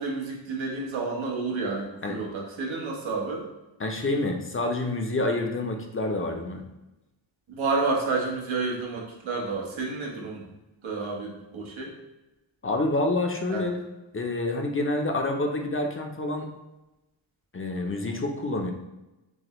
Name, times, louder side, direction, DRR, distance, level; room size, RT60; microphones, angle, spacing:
voice 1, 0.0-3.4 7.5-10.4 10.8-11.9 13.5-13.7, right 3 dB, 90° right, -1 dB, 1.1 m, -30 dB
voice 2, 3.8-6.6 12.6-13.8 14.1-16.5 17.5-18.7, left 2 dB, 30° left, 3 dB, 0.4 m, -27 dB
6.1 x 2.1 x 2.9 m, 1.0 s
wide cardioid pair, 115°, 46 cm